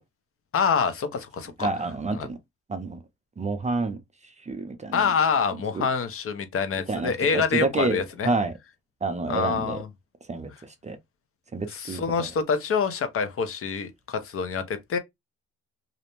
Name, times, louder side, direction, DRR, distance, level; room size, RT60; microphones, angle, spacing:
voice 1, 0.5-1.7 2.1-2.3 4.9-8.3 9.3-9.9 11.7-15.0, left 5 dB, 45° left, 0.6 m, -26 dB
voice 2, 1.6-2.4 2.7-3.0 3.4-4.0 4.5-5.0 5.7-5.9 6.9-8.5 9.0-9.8 10.3-11.0 11.5-12.3, right 3 dB, 25° right, 0.4 m, -29 dB
2.5 x 2.1 x 2.9 m
cardioid pair, 90°, 30 cm